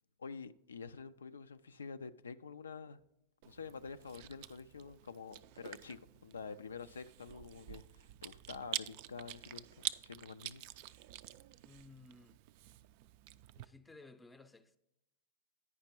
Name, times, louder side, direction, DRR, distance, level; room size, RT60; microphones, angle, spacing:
voice 1, 0.2-3.0 3.4-10.6, left 5 dB, 80° left, 0.3 m, -48 dB
Chewing mastication, 3.4-13.7, right 14 dB, 50° right, 0.3 m, -47 dB
voice 2, 11.6-12.4 13.6-14.8, left 3 dB, 10° left, 0.5 m, -57 dB
9.5 x 5.1 x 4.4 m
hypercardioid pair, 100°, 0 cm